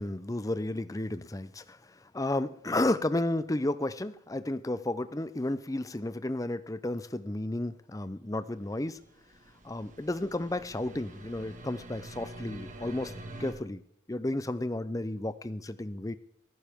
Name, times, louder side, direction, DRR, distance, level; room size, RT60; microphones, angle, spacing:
voice 1, 0.0-9.0 9.6-13.1 13.4-13.8 14.1-16.2, left 1 dB, 15° left, 13 dB, 0.5 m, -32 dB
sound 1, 8.8-13.5, right 1 dB, 40° right, 1.6 m, -46 dB
15.0 x 14.0 x 3.6 m, 0.73 s
head